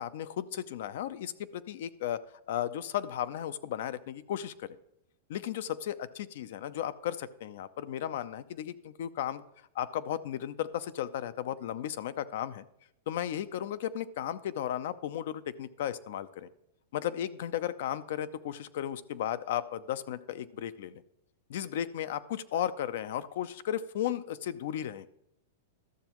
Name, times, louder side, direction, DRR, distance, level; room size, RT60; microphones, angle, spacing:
voice 1, 0.0-2.2 2.5-4.8 5.3-9.4 9.7-12.7 13.1-16.5 16.9-21.0 21.5-25.1, left 11 dB, 65° left, 14 dB, 0.5 m, -35 dB
12.5 x 7.0 x 3.0 m, 0.80 s
hypercardioid pair, 135°, 0 cm